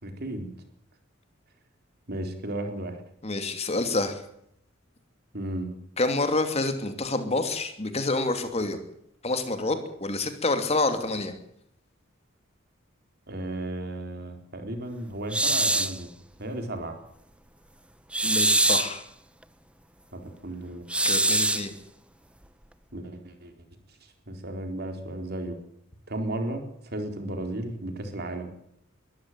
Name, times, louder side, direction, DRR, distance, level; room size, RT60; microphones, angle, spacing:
voice 1, 0.0-0.5 2.1-3.0 5.3-5.7 13.3-16.1 16.4-17.0 20.1-20.8 22.9-23.5 24.3-25.6 26.1-28.5, right 1 dB, 50° right, 5 dB, 3.9 m, -34 dB
voice 2, 3.2-4.2 6.0-8.8 9.2-11.3 18.2-19.0 21.0-21.7, left 2 dB, 30° left, 8 dB, 2.7 m, -27 dB
sound 1, 15.3-16.0 18.1-19.0 20.9-21.7, right 2 dB, 5° right, 0.8 m, -23 dB
22.5 x 14.5 x 9.3 m, 0.73 s
head